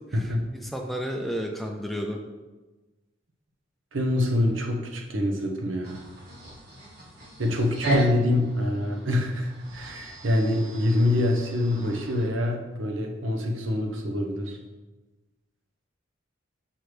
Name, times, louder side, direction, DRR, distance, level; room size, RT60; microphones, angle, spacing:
voice 1, 0.1-2.2, equal, ahead, 2 dB, 0.4 m, -32 dB
voice 2, 3.9-6.0 7.4-14.6, left 1 dB, 80° right, 2 dB, 0.9 m, -26 dB
sound 1, 5.8-12.3, right 1 dB, 55° right, 1.4 m, -33 dB
6.1 x 5.5 x 3.3 m, 1.2 s
head